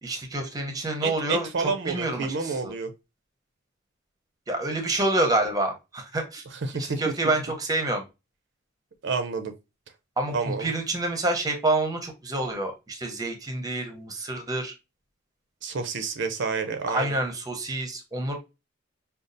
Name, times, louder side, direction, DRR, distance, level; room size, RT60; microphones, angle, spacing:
voice 1, 0.0-1.5 1.9-2.7 4.5-6.4 6.8-8.0 10.2-14.7 16.9-18.3, right 2 dB, 20° right, 0.7 m, -28 dB
voice 2, 1.0-2.9 6.5-7.0 9.0-9.5 10.3-10.7 15.6-17.2, right 4 dB, 60° right, 0.5 m, -29 dB
5.0 x 2.3 x 2.6 m
head